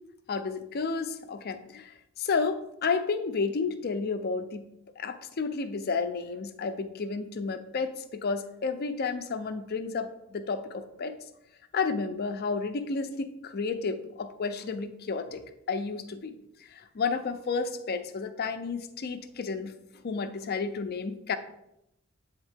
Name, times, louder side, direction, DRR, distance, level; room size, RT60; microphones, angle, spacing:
voice 1, 0.3-1.9 2.2-4.6 5.0-11.2 11.7-16.4 16.9-19.7 20.0-21.4, left 4 dB, 50° left, 9 dB, 0.5 m, -31 dB
8.1 x 3.6 x 3.4 m, 0.84 s
head